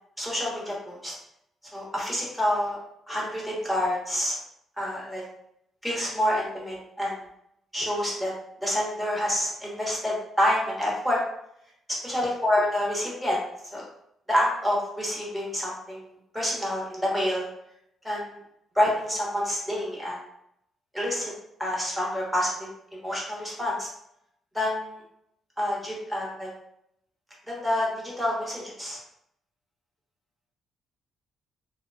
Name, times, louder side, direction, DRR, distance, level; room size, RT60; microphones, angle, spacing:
voice 1, 0.2-1.1 1.7-2.8 3.1-4.3 4.8-5.2 5.8-7.2 7.7-8.3 8.6-11.2 12.0-13.4 13.7-13.9 14.3-16.1 16.3-17.5 18.0-18.4 18.7-20.2 20.9-21.3 21.6-23.9 24.5-25.0 25.6-26.5 27.5-29.0, left 1 dB, 5° right, -4 dB, 1.1 m, -27 dB
2.9 x 2.1 x 2.6 m, 0.76 s
cardioid pair, 90°, 0 cm